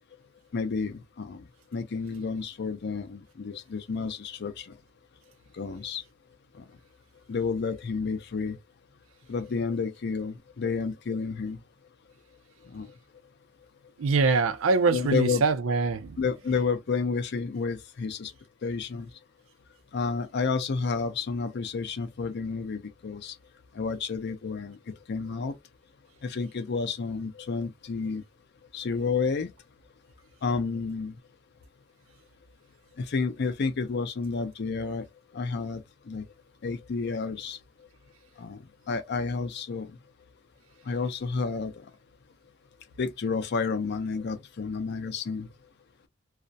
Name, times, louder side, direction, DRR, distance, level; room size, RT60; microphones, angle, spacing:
voice 1, 0.5-1.4 1.7-4.7 5.6-6.0 6.6-6.7 7.3-8.6 9.3-11.6 12.7-12.9 14.9-15.4 16.2-18.3 18.6-19.1 19.9-23.3 23.7-24.8 25.1-25.5 26.2-28.2 28.7-29.5 30.4-31.1 33.0-35.0 35.3-35.8 36.1-36.2 36.6-37.6 38.4-38.6 38.9-39.9 40.9-41.8 43.0-45.5, left 4 dB, 55° left, 0.5 m, -30 dB
voice 2, 14.0-16.2, right 4 dB, 70° right, 0.4 m, -24 dB
2.4 x 2.0 x 2.6 m
head